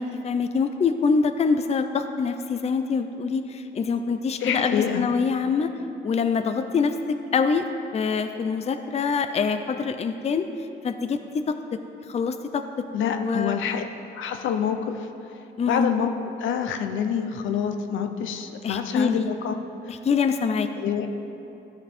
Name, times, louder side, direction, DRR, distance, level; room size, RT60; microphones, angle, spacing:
voice 1, 0.0-5.7 6.0-7.7 7.9-10.5 10.8-11.6 12.1-12.6 13.0-13.7 15.6-15.9 18.6-19.3 19.9-20.7, left 5 dB, 35° left, 8 dB, 0.5 m, -25 dB
voice 2, 4.4-5.1 12.9-13.8 14.1-15.1 15.7-16.1 16.4-19.5 20.8-21.1, left 8 dB, 75° left, 7 dB, 0.7 m, -26 dB
14.0 x 5.2 x 4.4 m, 2.8 s
cardioid pair, 90°, 20 cm